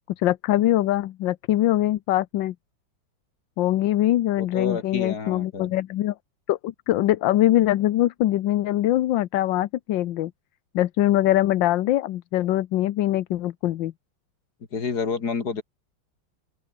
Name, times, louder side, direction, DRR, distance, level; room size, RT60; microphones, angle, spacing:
voice 1, 0.2-2.5 3.6-6.1 6.5-10.3 10.7-13.9, left 14 dB, 70° left, 1.4 m, -22 dB
voice 2, 4.4-5.7 14.7-15.6, left 5 dB, 50° left, 3.1 m, -29 dB
open air
omnidirectional pair, 2.2 m